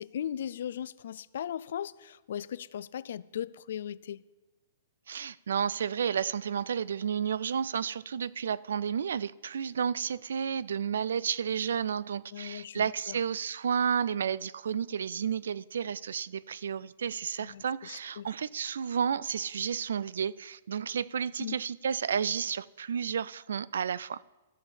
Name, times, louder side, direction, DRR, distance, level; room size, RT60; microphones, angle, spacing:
voice 1, 0.0-4.2 12.3-13.2 17.4-18.3 21.4-21.5, left 9 dB, 65° left, 0.4 m, -38 dB
voice 2, 5.1-24.2, right 7 dB, 90° right, 0.3 m, -31 dB
13.0 x 5.7 x 6.9 m
hypercardioid pair, 165°, 0 cm